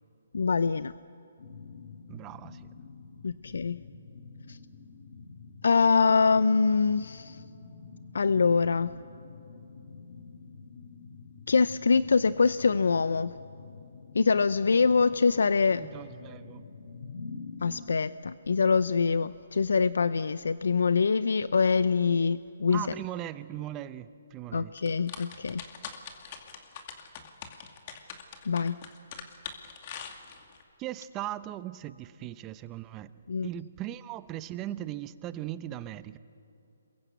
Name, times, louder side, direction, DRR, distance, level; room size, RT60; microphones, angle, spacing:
voice 1, 0.3-0.9 3.2-3.8 4.5-4.6 5.6-7.4 8.1-9.0 11.5-13.3 14.1-15.8 17.6-22.8 24.5-25.6 28.5-28.8 33.3-33.5, left 5 dB, 80° left, 15 dB, 0.6 m, -24 dB
sound 1, 1.4-17.9, left 4 dB, 55° left, 1.9 m, -47 dB
voice 2, 2.1-2.7 15.8-16.6 22.7-24.7 30.8-33.1 33.4-36.2, right 13 dB, 20° right, 15 dB, 0.7 m, -38 dB
sound 2, 24.8-30.6, left 7 dB, 35° left, 2.3 m, -43 dB
27.5 x 22.0 x 8.2 m, 2.8 s
hypercardioid pair, 160°, 0 cm